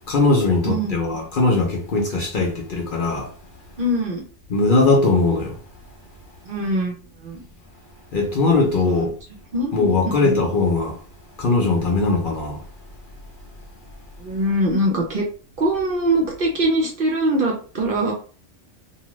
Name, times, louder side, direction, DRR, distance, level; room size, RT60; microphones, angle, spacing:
voice 1, 0.1-3.3 4.5-5.6 8.1-9.1 9.7-11.0 11.4-12.6, left 3 dB, 50° left, 0.7 m, -20 dB
voice 2, 3.8-4.2 6.4-7.4 8.9-9.1 9.5-9.8 10.0-10.4 14.2-15.3 15.6-18.1, right 1 dB, 50° right, 0.8 m, -22 dB
2.8 x 2.3 x 3.0 m
omnidirectional pair, 1.3 m